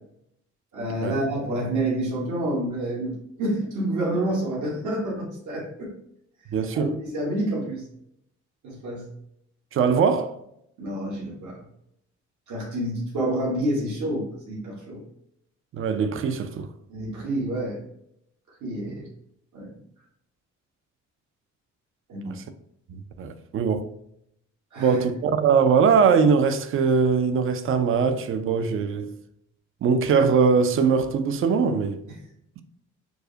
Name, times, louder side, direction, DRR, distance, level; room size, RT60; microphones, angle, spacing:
voice 1, 0.7-5.9 6.7-7.8 8.6-9.1 10.8-11.6 12.5-15.0 16.9-17.8 18.6-19.1 19.5-19.7 22.1-22.4 24.7-25.0 32.1-32.2, right 1 dB, 70° right, 1.4 m, -28 dB
voice 2, 6.5-7.0 9.7-10.4 15.7-16.7 22.3-22.4 22.9-23.9 24.8-29.1 29.8-32.0, right 5 dB, 45° right, 0.4 m, -21 dB
4.6 x 2.1 x 2.7 m
cardioid pair, 90°, 30 cm